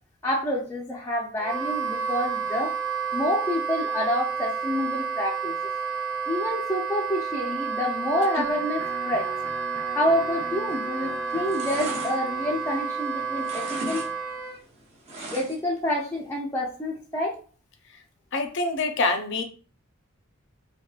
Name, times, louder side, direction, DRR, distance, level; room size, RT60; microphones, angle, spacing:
voice 1, 0.2-2.7 3.1-5.6 6.3-9.3 9.9-14.0 15.3-17.4, left 1 dB, 10° left, -3 dB, 0.4 m, -28 dB
Wind instrument woodwind instrument, 1.4-14.6, right 6 dB, 45° right, 1.0 m, -30 dB
Electric guitar, 8.8-14.8, right 1 dB, 75° right, 1.0 m, -43 dB
sound 1, 10.6-11.0 11.3-13.1 13.4-14.1 14.4-15.8 16.1-16.2, right 1 dB, 30° right, 0.6 m, -37 dB
voice 2, 18.3-19.4, left 3 dB, 60° left, 6 dB, 0.6 m, -26 dB
3.6 x 2.2 x 2.3 m, 0.40 s
head